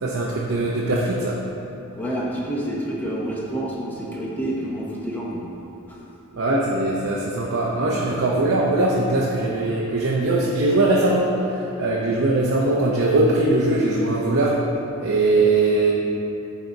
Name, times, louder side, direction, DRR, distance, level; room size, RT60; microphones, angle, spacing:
voice 1, 0.0-1.4 6.3-14.6 15.0-15.9, right 2 dB, 65° right, -4 dB, 0.7 m, -21 dB
voice 2, 2.0-5.5 5.9-6.0 7.8-8.2, right 1 dB, 10° left, -5 dB, 0.7 m, -28 dB
10.5 x 3.9 x 4.0 m, 2.9 s
head